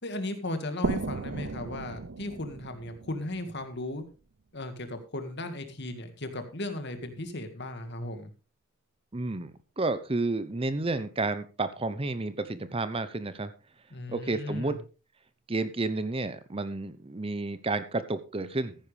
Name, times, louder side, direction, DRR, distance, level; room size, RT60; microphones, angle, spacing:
voice 1, 0.0-4.0 4.5-8.3 13.9-14.8, left 1 dB, 55° left, 7 dB, 1.9 m, -36 dB
sound 1, 0.8-4.3, right 4 dB, 65° right, 0.6 m, -36 dB
voice 2, 9.1-13.5 14.1-14.8 15.5-18.8, right 2 dB, 25° right, 13 dB, 0.7 m, -31 dB
14.5 x 10.0 x 3.3 m, 0.33 s
head